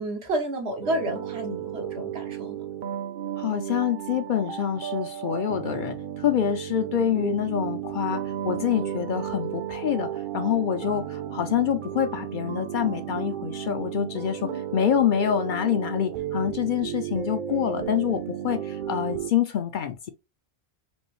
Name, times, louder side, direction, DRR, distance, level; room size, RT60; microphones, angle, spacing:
voice 1, 0.0-2.7 14.4-14.8, right 1 dB, 85° right, 1.3 m, -31 dB
sound 1, 0.8-19.3, right 10 dB, 60° right, 0.7 m, -34 dB
voice 2, 3.4-20.1, left 9 dB, 60° left, 0.6 m, -26 dB
5.3 x 2.0 x 3.0 m
omnidirectional pair, 1.1 m